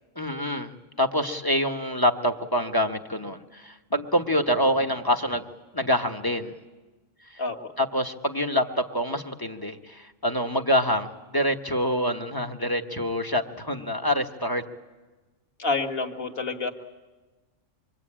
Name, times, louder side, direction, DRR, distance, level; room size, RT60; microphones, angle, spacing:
voice 1, 0.2-5.4 5.7-6.5 7.3-7.4 7.8-14.6, equal, 20° left, 4 dB, 1.1 m, -26 dB
voice 2, 15.6-16.7, left 3 dB, 50° left, 4 dB, 1.9 m, -28 dB
26.0 x 23.0 x 8.8 m, 1.2 s
omnidirectional pair, 1.3 m